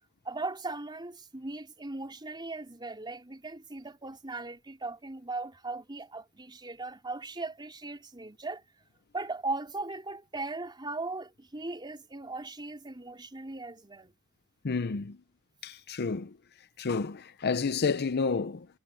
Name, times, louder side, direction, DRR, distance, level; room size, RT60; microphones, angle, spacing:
voice 1, 0.2-8.6 9.1-14.1, right 3 dB, 20° right, 4.2 m, -38 dB
voice 2, 14.6-15.2 15.6-16.4 16.8-18.7, left 4 dB, 50° left, 0.6 m, -30 dB
head